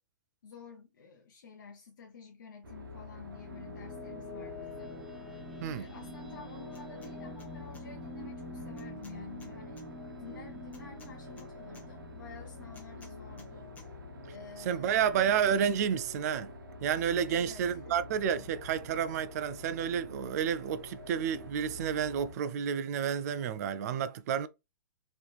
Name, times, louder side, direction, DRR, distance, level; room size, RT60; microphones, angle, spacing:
voice 1, 0.4-4.9 5.7-9.9 10.2-13.7 14.3-15.0 17.1-18.0, left 5 dB, 70° left, 0.8 m, -50 dB
sound 1, 2.6-22.4, left 2 dB, 85° right, 1.0 m, -47 dB
sound 2, 2.9-14.2, left 1 dB, ahead, 0.6 m, -47 dB
sound 3, 6.7-7.1 7.4-7.8 8.8-9.9 10.7-11.9 12.7-13.5 13.8-13.9, left 3 dB, 15° left, 1.0 m, -56 dB
voice 2, 14.6-16.5 16.8-24.5, right 8 dB, 50° right, 0.4 m, -30 dB
3.4 x 3.0 x 2.3 m
hypercardioid pair, 130°, 11 cm